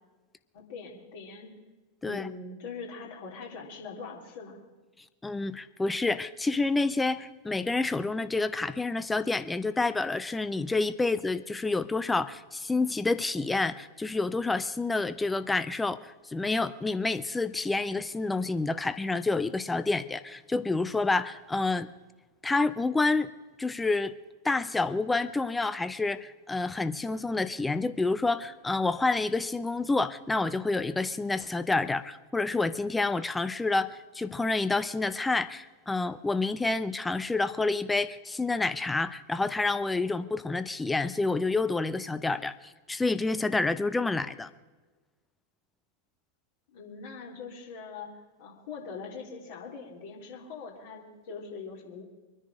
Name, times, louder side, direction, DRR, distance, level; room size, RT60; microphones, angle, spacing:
voice 1, 0.5-1.5 2.0-4.6 46.7-48.1 48.4-52.0, left 4 dB, 55° left, -2 dB, 3.5 m, -42 dB
voice 2, 5.2-21.9 22.4-23.3 23.6-24.1 24.4-44.5, left 3 dB, 10° left, 13 dB, 0.7 m, -28 dB
24.5 x 10.0 x 5.1 m, 1.3 s
figure-of-eight pair, 90°, 0 cm